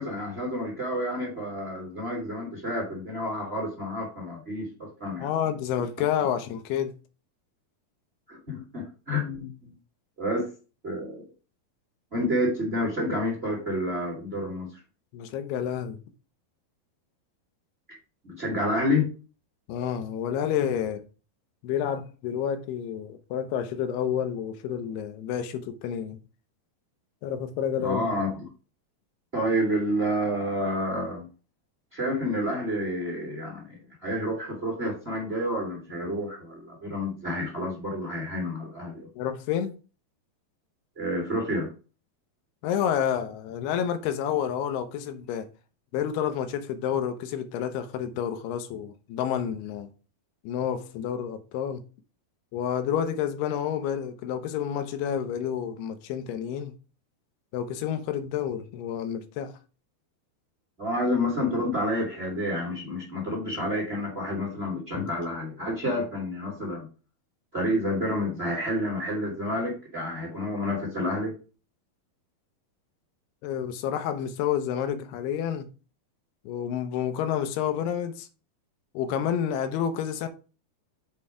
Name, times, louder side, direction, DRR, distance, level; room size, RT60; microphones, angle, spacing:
voice 1, 0.0-5.3 8.3-9.7 10.2-10.5 10.8-11.2 12.1-14.7 18.2-19.1 27.8-28.3 29.3-31.3 31.9-39.1 41.0-41.7 60.8-66.9 67.5-71.3, left 1 dB, 20° right, 1.8 m, -29 dB
voice 2, 5.2-6.9 15.1-16.0 19.7-21.0 21.6-26.2 27.2-28.0 39.2-39.8 42.6-45.5 45.9-49.9 50.4-51.8 52.5-56.7 57.5-59.6 64.9-65.0 73.4-75.7 76.4-78.3 78.9-80.3, left 9 dB, 90° left, 2.9 m, -29 dB
7.5 x 4.3 x 4.9 m
omnidirectional pair, 4.5 m